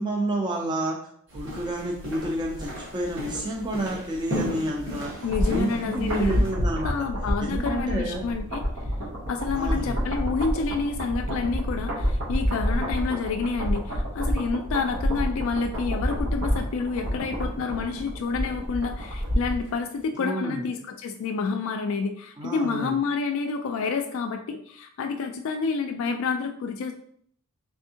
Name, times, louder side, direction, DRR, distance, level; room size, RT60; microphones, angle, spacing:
voice 1, 0.0-5.1 5.5-6.9 7.4-8.2 9.5-10.0 20.1-20.6 22.4-23.0, right 1 dB, 20° right, -1 dB, 0.4 m, -29 dB
sound 1, 1.3-6.5, left 1 dB, 60° right, 1.3 m, -36 dB
sound 2, 5.0-19.7 20.0-20.1, equal, 80° right, 0.9 m, -28 dB
voice 2, 5.2-6.4 6.8-8.6 9.3-26.9, left 5 dB, 65° left, 5 dB, 0.3 m, -29 dB
3.4 x 3.4 x 2.8 m, 0.64 s
head